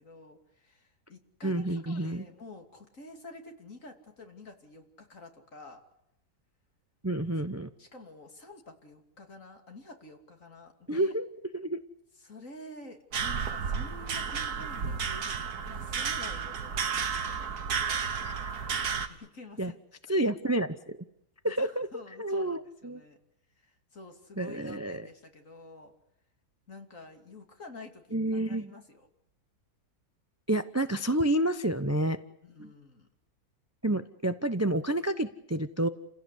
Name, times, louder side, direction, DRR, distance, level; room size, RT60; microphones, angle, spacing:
voice 1, 0.0-5.8 7.8-11.2 12.2-18.0 19.0-19.8 21.4-23.2 23.6-25.9 26.7-29.1 32.4-33.1, left 2 dB, 55° left, 4 dB, 3.3 m, -49 dB
voice 2, 1.4-2.2 7.0-7.7 10.9-11.3 11.5-11.8 18.2-18.3 19.6-19.7 20.1-21.0 21.4-21.9 22.2-23.0 24.4-25.0 28.1-28.7 30.5-32.2 32.6-32.7 33.8-35.9, right 1 dB, 15° right, 10 dB, 0.6 m, -29 dB
sound 1, 13.1-19.1, right 6 dB, 85° right, 2.0 m, -32 dB
29.5 x 16.5 x 8.3 m, 0.84 s
omnidirectional pair, 1.6 m